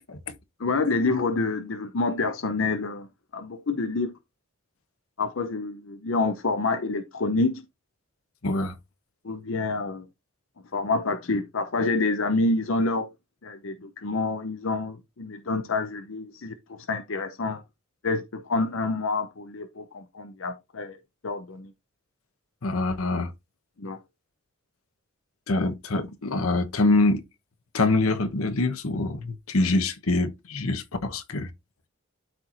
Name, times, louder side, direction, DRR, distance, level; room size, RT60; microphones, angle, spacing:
voice 1, 0.6-3.1 3.3-4.1 5.2-7.6 9.2-10.0 10.7-13.1 13.4-17.6 18.0-21.0 21.2-21.7 23.8-24.0, left 3 dB, 65° left, 0.7 m, -27 dB
voice 2, 8.4-8.8 22.6-23.3 25.5-27.2 27.7-31.5, left 2 dB, 85° left, 1.1 m, -25 dB
12.5 x 4.5 x 2.6 m
head